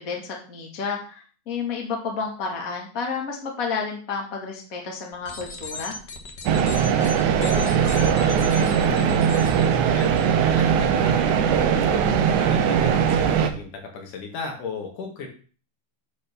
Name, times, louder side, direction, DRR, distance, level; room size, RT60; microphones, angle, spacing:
voice 1, 0.0-5.9, left 5 dB, 30° left, 0 dB, 2.3 m, -31 dB
sound 1, 5.1-10.2, left 3 dB, 55° left, 1.2 m, -38 dB
sound 2, 6.5-13.5, right 8 dB, 75° right, 2.3 m, -20 dB
voice 2, 7.2-12.1 12.4-15.3, left 5 dB, 75° left, 1 dB, 3.5 m, -36 dB
9.9 x 4.2 x 6.9 m, 0.39 s
omnidirectional pair, 3.6 m